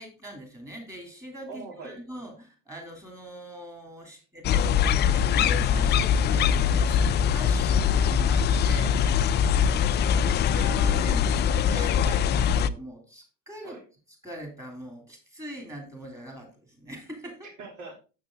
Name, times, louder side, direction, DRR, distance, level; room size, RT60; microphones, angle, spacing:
voice 1, 0.0-7.0 7.3-9.0 10.5-13.8 14.2-17.5, equal, 10° right, 2 dB, 3.2 m, -41 dB
voice 2, 1.5-2.0 4.1-4.2 9.6-10.6 13.6-13.8 17.4-18.0, right 4 dB, 50° right, 1 dB, 3.2 m, -44 dB
sound 1, 4.4-12.7, left 8 dB, 30° left, 0.4 m, -22 dB
7.0 x 6.6 x 3.8 m, 0.34 s
supercardioid pair, 105°, 36 cm